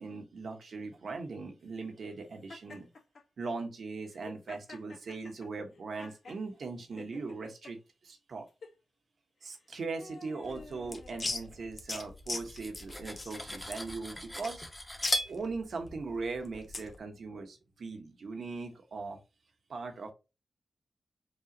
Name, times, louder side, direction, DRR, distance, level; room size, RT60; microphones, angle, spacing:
voice 1, 0.0-2.9 3.4-7.8 8.0-8.5 9.4-14.6 15.2-19.2 19.7-20.1, right 4 dB, 70° right, 4 dB, 1.2 m, -39 dB
Laughter, 2.5-3.2 4.0-6.4 7.0-7.7 8.5-8.8 9.5-11.7, left 3 dB, 80° left, 1.6 m, -51 dB
sound 1, 10.4-17.0, left 2 dB, 35° left, 1.0 m, -40 dB
Cutlery silverware, 12.2-15.4, equal, 10° left, 0.7 m, -37 dB
5.4 x 2.4 x 2.9 m, 0.27 s
cardioid pair, 80°, 0 cm